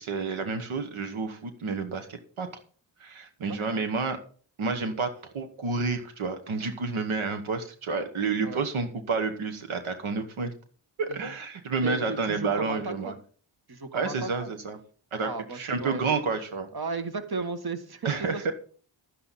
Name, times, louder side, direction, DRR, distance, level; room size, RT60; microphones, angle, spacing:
voice 1, 0.0-2.5 3.0-4.2 4.6-10.5 11.0-13.1 13.9-14.8 15.1-16.7 18.0-18.5, right 4 dB, 90° right, 7 dB, 1.1 m, -30 dB
voice 2, 3.5-3.8 8.4-8.6 11.1-11.2 11.8-13.1 13.7-14.5 15.2-16.2 16.7-18.5, right 4 dB, 50° right, 8 dB, 1.6 m, -35 dB
11.5 x 9.7 x 4.1 m, 0.43 s
cardioid pair, 40°, 47 cm